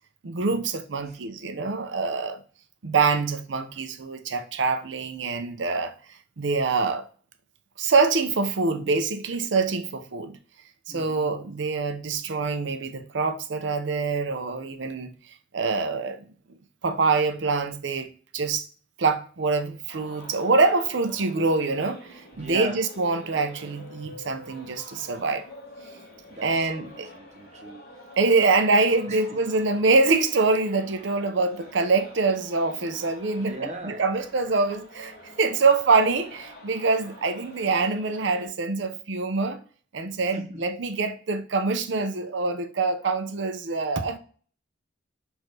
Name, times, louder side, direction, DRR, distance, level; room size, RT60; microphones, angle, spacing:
voice 1, 0.2-2.4 2.8-5.9 6.4-7.1 7.8-10.4 10.9-15.1 15.5-16.3 16.8-18.1 18.3-18.7 19.0-25.4 26.4-27.1 28.2-33.6 33.8-39.6 39.9-44.2, right 3 dB, 75° right, 0.6 m, -25 dB
voice 2, 10.9-11.3 22.3-22.8 26.3-27.9 29.1-29.2 33.4-34.0 40.3-40.6, right 1 dB, 35° right, 0.8 m, -38 dB
sound 1, 19.9-38.5, left 1 dB, 55° left, 2.5 m, -47 dB
6.2 x 2.6 x 3.2 m
head